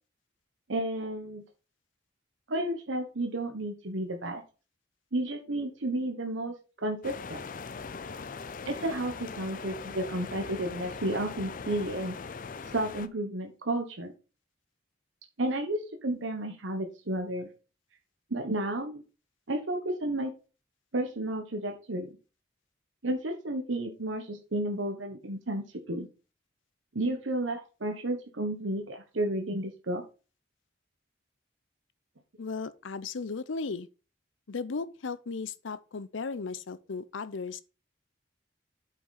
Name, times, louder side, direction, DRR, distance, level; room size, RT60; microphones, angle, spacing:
voice 1, 0.7-1.4 2.5-4.4 5.1-6.5 6.8-7.4 8.6-12.2 12.7-14.1 15.4-17.5 18.3-19.0 19.5-20.3 20.9-22.1 23.0-26.1 26.9-30.0, right 1 dB, 80° right, 1.2 m, -32 dB
sound 1, 7.0-13.1, left 5 dB, 45° left, 0.5 m, -40 dB
voice 2, 32.4-33.9 34.5-37.6, left 4 dB, 85° left, 0.6 m, -36 dB
8.7 x 5.8 x 4.2 m
head